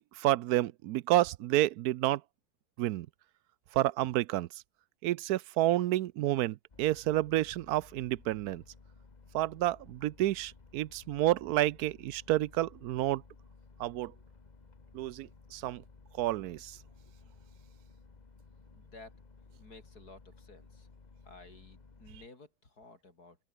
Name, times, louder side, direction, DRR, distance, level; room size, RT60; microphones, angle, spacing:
voice 1, 0.0-2.2 2.8-3.1 3.7-4.5 5.0-8.6 9.3-13.2 13.8-14.1 14.9-15.8 16.2-16.8, right 15 dB, 80° right, 1.1 m, -30 dB
sound 1, 6.7-22.3, left 4 dB, 30° left, 1.4 m, -57 dB
voice 2, 18.7-19.2 19.6-20.9 21.3-23.4, left 3 dB, 80° left, 5.3 m, -54 dB
open air
omnidirectional pair, 1.6 m